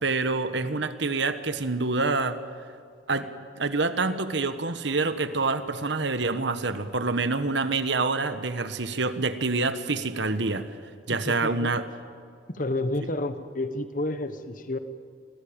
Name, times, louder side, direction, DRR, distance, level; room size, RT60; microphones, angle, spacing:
voice 1, 0.0-2.4 3.1-3.3 3.6-10.7 11.1-11.8, right 3 dB, 65° right, 11 dB, 1.3 m, -26 dB
voice 2, 11.1-11.7 12.5-14.8, left 2 dB, 45° left, 10 dB, 1.2 m, -30 dB
26.0 x 18.5 x 8.8 m, 2.3 s
head